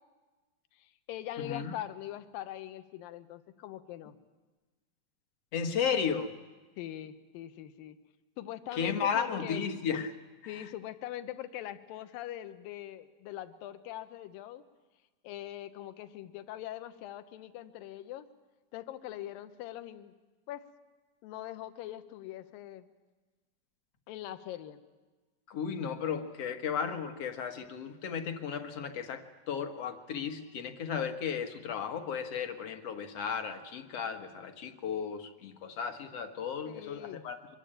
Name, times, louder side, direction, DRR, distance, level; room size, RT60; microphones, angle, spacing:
voice 1, 0.8-4.2 6.8-8.0 8.4-9.6 10.5-14.6 15.2-18.3 18.7-20.1 20.5-20.6 21.2-22.9 24.1-24.8 36.7-37.2, left 13 dB, 75° left, 11 dB, 2.7 m, -42 dB
voice 2, 1.4-1.7 5.5-6.3 8.7-10.1 10.4-10.5 25.5-37.4, left 7 dB, 50° left, 7 dB, 2.1 m, -34 dB
25.0 x 22.0 x 9.0 m, 1.3 s
omnidirectional pair, 4.2 m